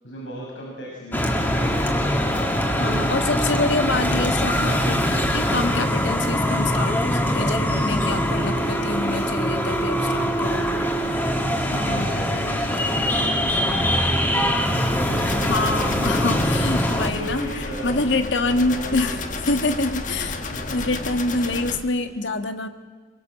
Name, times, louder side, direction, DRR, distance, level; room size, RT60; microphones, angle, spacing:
voice 1, 0.0-2.5 8.7-9.0 11.8-15.5 17.0-18.0 18.4-19.3 20.5-20.8, right 1 dB, 90° left, -3 dB, 6.1 m, -36 dB
sound 1, 1.1-17.1, equal, 10° left, 2.2 m, -22 dB
voice 2, 2.8-10.9 11.7-12.1 12.8-13.1 15.4-20.4 20.7-22.7, left 2 dB, 70° left, 7 dB, 1.5 m, -26 dB
sound 2, 15.2-21.8, left 3 dB, 40° left, 1.4 m, -32 dB
23.5 x 22.5 x 7.8 m, 1.5 s
head